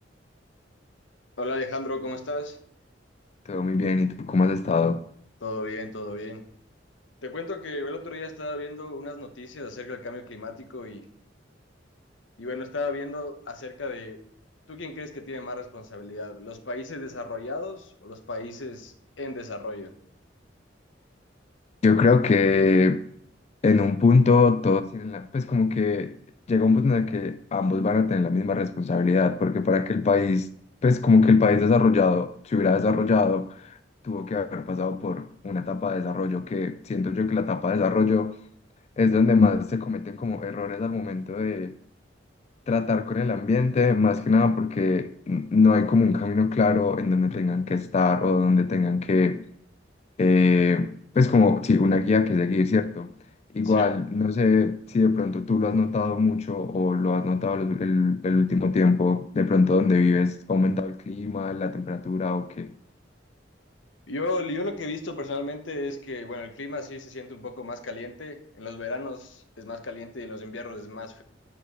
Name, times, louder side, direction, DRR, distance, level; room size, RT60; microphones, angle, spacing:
voice 1, 1.4-2.6 5.4-6.4 7.2-11.0 12.4-14.2 14.7-19.9 53.6-53.9 64.1-71.2, left 2 dB, 90° left, 1.2 m, -34 dB
voice 2, 3.5-5.0 21.8-23.0 23.6-26.2 26.5-30.5 30.8-33.8 34.0-38.3 39.0-41.8 42.7-49.4 50.2-53.1 53.5-62.7, left 4 dB, 35° left, 0.3 m, -22 dB
9.3 x 4.5 x 6.6 m
head